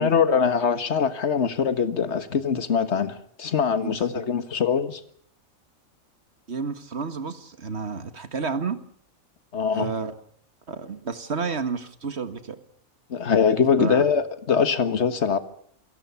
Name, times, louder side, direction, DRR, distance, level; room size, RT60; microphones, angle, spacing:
voice 1, 0.0-5.0 9.5-9.9 13.1-15.4, left 6 dB, 55° left, 11 dB, 1.7 m, -23 dB
voice 2, 3.8-4.2 6.5-8.8 9.7-10.1 10.7-12.6 13.8-14.0, right 5 dB, 50° right, 10 dB, 1.9 m, -31 dB
28.5 x 17.5 x 7.0 m, 0.62 s
omnidirectional pair, 1.4 m